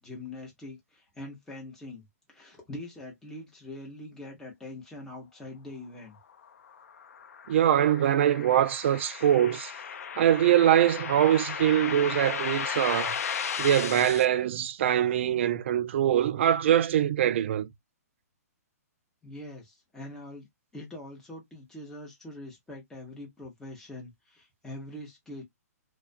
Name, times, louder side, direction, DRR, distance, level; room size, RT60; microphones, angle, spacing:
voice 1, 0.0-6.2 19.2-20.5 20.7-25.4, left 1 dB, 5° left, 0.8 m, -43 dB
sound 1, 6.4-14.2, left 7 dB, 65° left, 0.5 m, -35 dB
voice 2, 7.5-9.7 10.2-13.2 13.6-17.7, right 10 dB, 50° right, 0.3 m, -23 dB
2.4 x 2.2 x 2.4 m
hypercardioid pair, 155°, 9 cm